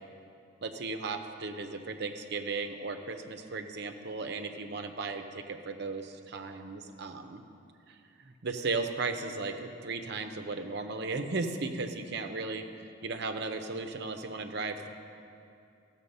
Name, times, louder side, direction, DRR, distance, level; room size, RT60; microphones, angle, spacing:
voice 1, 0.6-7.4 8.3-12.6 13.0-14.9, right 3 dB, 50° right, 6 dB, 0.7 m, -36 dB
15.0 x 7.3 x 5.4 m, 2.6 s
head